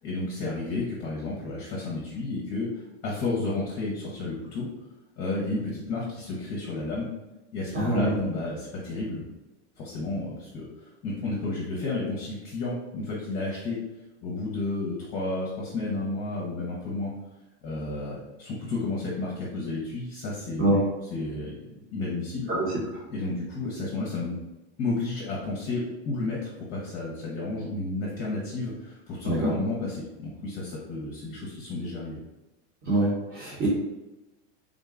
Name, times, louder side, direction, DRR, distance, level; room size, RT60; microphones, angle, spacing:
voice 1, 0.0-4.7 5.2-7.1 7.5-9.2 9.8-13.8 14.2-17.1 17.6-20.7 21.1-22.5 23.1-24.4 24.8-32.2, left 2 dB, 25° left, -4 dB, 0.7 m, -32 dB
voice 2, 7.7-8.2 20.6-20.8 22.5-22.7 29.2-29.5 32.8-33.7, right 1 dB, 30° right, -8 dB, 0.9 m, -25 dB
3.7 x 2.2 x 3.6 m, 1.0 s
supercardioid pair, 155°, 37 cm